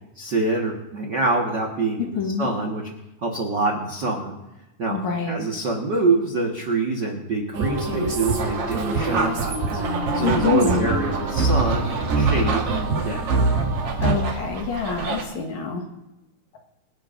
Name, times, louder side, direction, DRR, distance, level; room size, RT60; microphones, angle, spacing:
voice 1, 0.1-2.8 3.2-4.3 4.8-5.0 5.3-13.2, right 3 dB, 70° right, 0 dB, 1.0 m, -25 dB
voice 2, 2.2-2.5 4.9-5.5 10.2-10.9 14.0-15.8, left 6 dB, 60° left, 2 dB, 2.4 m, -26 dB
sound 1, 7.5-14.1, right 3 dB, 90° right, 4.3 m, -24 dB
sound 2, 8.2-15.2, right 4 dB, 50° right, 1.9 m, -31 dB
27.0 x 11.5 x 2.6 m, 0.97 s
omnidirectional pair, 4.4 m